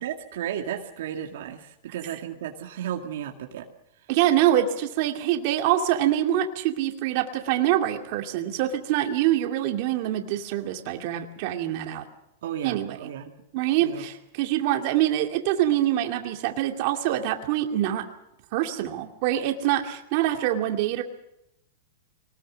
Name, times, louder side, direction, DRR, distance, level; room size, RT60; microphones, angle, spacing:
voice 1, 0.0-3.7 12.4-13.3 13.8-14.1, right 10 dB, 70° right, 4 dB, 2.2 m, -34 dB
voice 2, 4.1-12.0 12.6-13.1 13.5-18.0 18.5-21.0, right 12 dB, 50° right, 4 dB, 2.4 m, -25 dB
23.5 x 19.5 x 6.4 m, 0.85 s
supercardioid pair, 145°, 0 cm